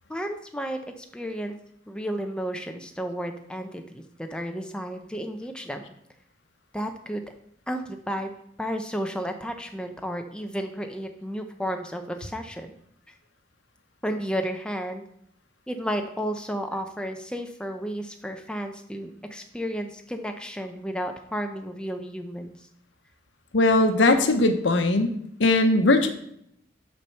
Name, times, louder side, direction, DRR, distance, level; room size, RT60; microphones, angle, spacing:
voice 1, 0.1-1.6 1.9-5.8 6.7-7.2 7.7-8.3 8.6-12.7 14.0-15.0 15.7-22.6, equal, 5° left, 5 dB, 0.5 m, -32 dB
voice 2, 23.5-25.1 25.4-26.1, left 2 dB, 75° left, 7 dB, 0.9 m, -19 dB
6.6 x 4.4 x 6.5 m, 0.73 s
head